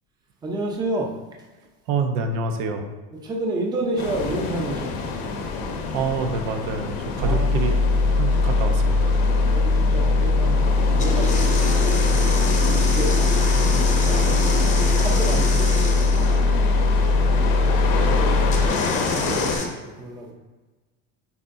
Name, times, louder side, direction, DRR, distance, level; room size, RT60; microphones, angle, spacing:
voice 1, 0.4-1.1 3.2-5.3 7.2-7.6 9.5-12.3 12.7-14.4 14.8-16.1 16.4-16.6 17.2-20.3, right 1 dB, 15° right, 0 dB, 0.7 m, -31 dB
voice 2, 1.9-2.9 5.9-7.8 8.2-9.1, right 4 dB, 85° right, 5 dB, 0.8 m, -27 dB
sound 1, 4.0-19.6, left 4 dB, 75° left, 1.0 m, -28 dB
sound 2, 7.2-18.7, left 3 dB, 50° right, 0.9 m, -20 dB
sound 3, 11.0-16.4 18.5-19.7, left 4 dB, 25° left, 0.7 m, -29 dB
9.3 x 4.3 x 2.6 m, 1.2 s
cardioid pair, 175°, 29 cm